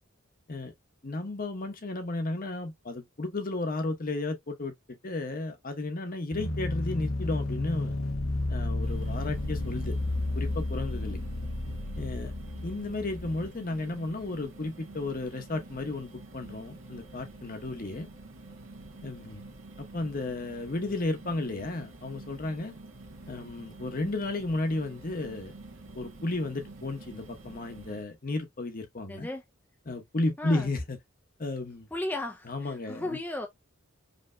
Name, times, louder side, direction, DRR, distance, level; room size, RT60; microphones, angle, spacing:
voice 1, 1.0-7.9 8.5-9.9 10.3-11.2 12.0-12.3 12.6-18.1 19.0-19.4 19.9-22.7 23.3-25.5 25.9-29.3 29.9-31.0 31.4-31.9 32.5-33.2, left 2 dB, 45° left, 0.9 m, -33 dB
sound 1, 6.3-13.5, left 2 dB, 80° left, 0.9 m, -32 dB
sound 2, 8.8-28.0, right 2 dB, 75° right, 1.3 m, -48 dB
voice 2, 29.1-29.4 30.4-30.7 31.9-33.5, left 1 dB, 10° left, 0.4 m, -35 dB
5.1 x 2.8 x 2.2 m
head